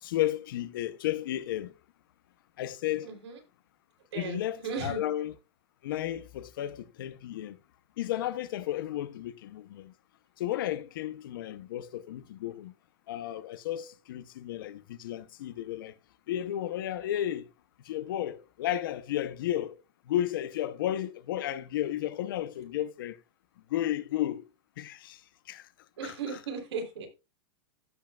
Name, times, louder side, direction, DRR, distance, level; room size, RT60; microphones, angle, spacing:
voice 1, 0.0-1.7 2.6-3.2 4.1-5.3 5.8-7.6 8.0-9.9 10.4-12.7 13.1-15.9 16.3-17.5 17.8-19.7 20.1-23.2 23.7-24.5 24.8-25.2 25.5-25.7 26.0-26.4, left 12 dB, 55° left, 0.8 m, -33 dB
voice 2, 3.0-3.4 4.1-5.0 26.0-27.1, right 5 dB, 90° right, 3.7 m, -36 dB
15.5 x 5.6 x 2.4 m
supercardioid pair, 170°, 14 cm